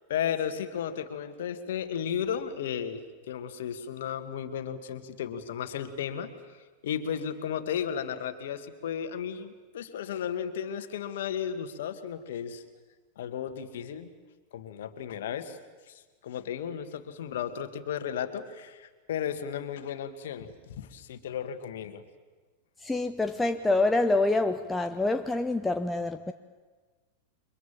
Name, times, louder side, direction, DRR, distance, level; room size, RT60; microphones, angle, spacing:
voice 1, 0.1-3.0 3.3-6.3 6.8-12.6 13.2-14.1 14.5-15.6 15.9-22.0, left 8 dB, 60° left, 2.0 m, -34 dB
voice 2, 22.8-26.3, left 2 dB, 10° left, 0.8 m, -26 dB
29.5 x 24.0 x 7.5 m
figure-of-eight pair, 90°, 0 cm